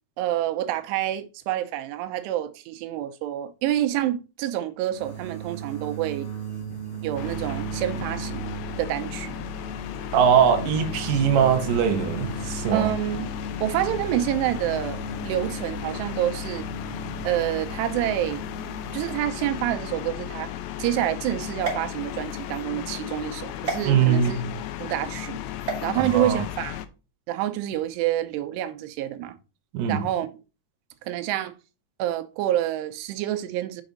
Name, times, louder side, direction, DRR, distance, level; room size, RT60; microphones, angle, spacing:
voice 1, 0.2-6.3 7.0-8.5 8.8-9.4 12.7-13.3 13.6-16.7 17.2-18.4 18.9-20.5 20.8-24.4 24.8-25.4 25.8-26.8 27.3-29.4 29.9-30.3 31.0-31.5 32.0-33.8, right 13 dB, 90° right, 2.8 m, -27 dB
sound 1, 4.9-19.2, right 8 dB, 35° left, 3.0 m, -37 dB
sound 2, 7.2-26.9, left 12 dB, 80° left, 2.2 m, -35 dB
voice 2, 10.1-12.9 23.9-24.5 26.0-26.4 29.7-30.0, right 7 dB, 70° right, 2.2 m, -21 dB
sound 3, 21.6-22.6 23.6-23.8 25.6-25.9, right 4 dB, 30° right, 1.3 m, -32 dB
7.0 x 5.0 x 3.8 m
omnidirectional pair, 4.7 m